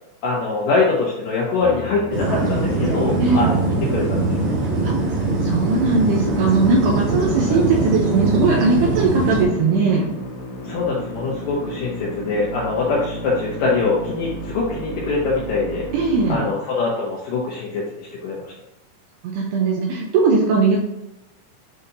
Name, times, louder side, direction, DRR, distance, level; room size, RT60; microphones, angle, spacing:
voice 1, 0.2-4.6 7.4-7.6 10.6-15.8 16.3-18.5, left 3 dB, 75° left, -4 dB, 2.0 m, -23 dB
Musical instrument, 1.6-16.4, equal, 60° left, 2.7 m, -33 dB
sound 1, 2.1-9.4, right 3 dB, 60° right, 1.5 m, -22 dB
voice 2, 3.2-3.6 4.8-4.9 5.4-10.1 15.9-16.5 19.2-20.8, right 4 dB, 80° right, -1 dB, 2.5 m, -19 dB
9.5 x 4.1 x 2.8 m, 0.88 s
omnidirectional pair, 5.3 m